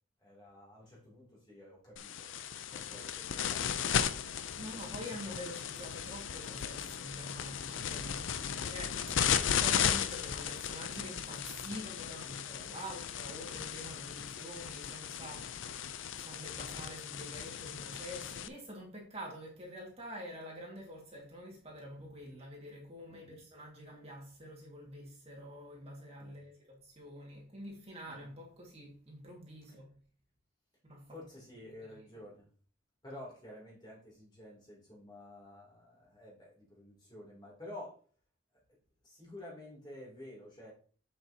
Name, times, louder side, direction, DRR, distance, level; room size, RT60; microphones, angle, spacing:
voice 1, 0.2-4.9 12.7-13.0 13.9-14.1 23.1-23.4 26.2-26.4 28.1-28.3 31.1-32.5 33.0-38.0 39.0-40.7, left 1 dB, 20° left, 3.1 m, -51 dB
sound 1, 2.0-18.5, left 8 dB, 70° left, 0.5 m, -36 dB
voice 2, 4.5-29.9 30.8-31.1, equal, 30° right, 2.0 m, -47 dB
7.7 x 6.6 x 2.9 m
head